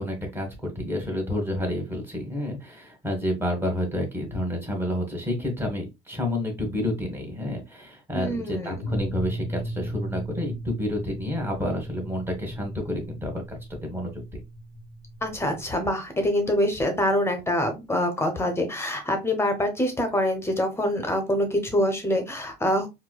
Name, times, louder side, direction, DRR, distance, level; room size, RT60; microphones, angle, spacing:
voice 1, 0.0-14.1, left 1 dB, 10° right, 1 dB, 1.4 m, -29 dB
voice 2, 8.1-8.9 15.2-22.9, left 1 dB, 10° left, 5 dB, 1.0 m, -25 dB
sound 1, 8.8-15.6, right 1 dB, 50° left, 0.6 m, -36 dB
4.6 x 2.2 x 2.2 m, 0.23 s
supercardioid pair, 100°, 21 cm